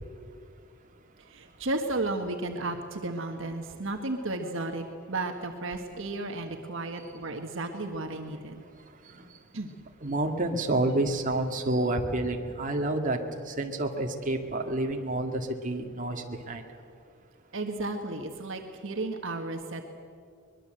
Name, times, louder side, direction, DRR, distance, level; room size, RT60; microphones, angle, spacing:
voice 1, 1.2-8.6 9.5-9.7 17.5-20.0, right 2 dB, 65° right, 1.5 m, -33 dB
voice 2, 10.0-13.2 13.5-16.6, right 2 dB, 40° right, 2.1 m, -29 dB
23.0 x 21.5 x 7.8 m
head